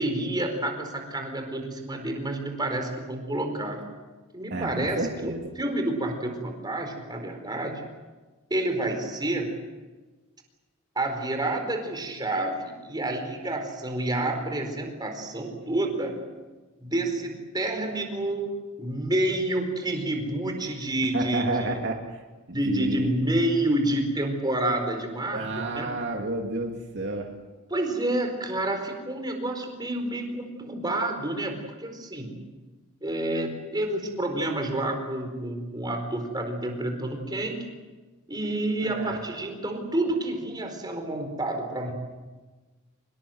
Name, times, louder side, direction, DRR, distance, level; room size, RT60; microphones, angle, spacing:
voice 1, 0.0-3.8 4.3-7.9 8.5-9.6 11.0-16.2 16.8-21.5 22.5-25.9 27.7-32.4 33.0-37.7 38.3-41.9, right 1 dB, 20° right, 4 dB, 4.5 m, -29 dB
voice 2, 4.5-5.4 21.1-22.2 22.5-23.1 25.3-27.3 38.8-39.2, right 2 dB, 55° right, 1 dB, 2.5 m, -30 dB
25.5 x 21.5 x 7.9 m, 1.3 s
head